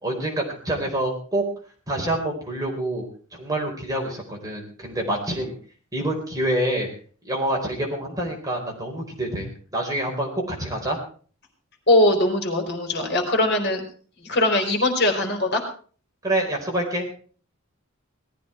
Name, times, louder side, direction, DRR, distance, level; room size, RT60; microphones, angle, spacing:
voice 1, 0.0-1.5 1.9-3.0 3.3-5.5 5.9-6.9 7.2-9.5 9.7-11.0 16.2-17.1, right 1 dB, 15° right, 0 dB, 4.3 m, -26 dB
voice 2, 11.9-13.8 14.2-15.6, left 1 dB, 55° left, 4 dB, 3.9 m, -21 dB
18.5 x 14.0 x 4.5 m, 0.42 s
head